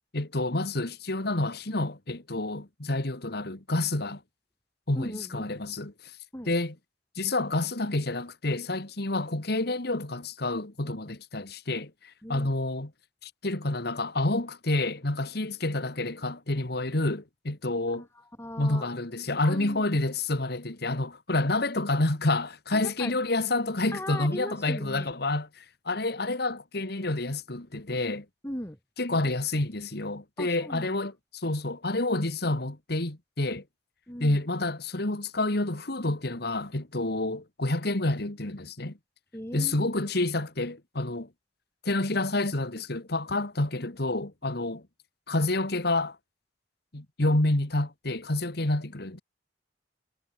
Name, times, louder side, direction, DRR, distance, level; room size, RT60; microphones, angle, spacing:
voice 1, 0.1-4.2 4.9-6.1 6.5-6.7 7.2-12.9 13.2-18.1 18.6-28.3 29.0-33.6 34.2-39.0 39.5-41.3 41.8-44.8 45.3-46.2 46.9-49.2, left 2 dB, 60° left, 2.1 m, -29 dB
voice 2, 4.9-5.6 6.3-6.5 12.2-12.5 17.9-18.9 19.4-19.9 22.7-23.1 23.9-25.1 28.4-28.8 30.4-31.0 34.1-34.4 39.3-39.9 47.2-47.4, left 1 dB, 15° left, 7.9 m, -39 dB
head